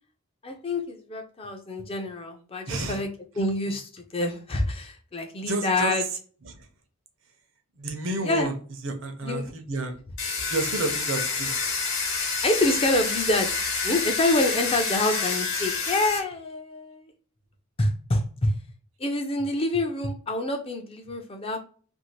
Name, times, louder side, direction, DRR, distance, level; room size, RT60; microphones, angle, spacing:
voice 1, 0.4-3.1 3.4-6.0 8.2-8.5 9.2-9.4 12.4-13.5 13.8-17.1 17.8-18.5 19.0-21.6, left 2 dB, 25° left, 4 dB, 0.4 m, -27 dB
voice 2, 2.7-3.0 5.4-5.9 6.4-6.7 7.8-8.5 8.8-10.0 10.5-11.5, right 2 dB, 60° right, 5 dB, 0.7 m, -30 dB
Domestic sounds home sounds, 10.2-16.2, left 4 dB, 55° left, 1.0 m, -28 dB
2.6 x 2.4 x 3.0 m, 0.42 s
head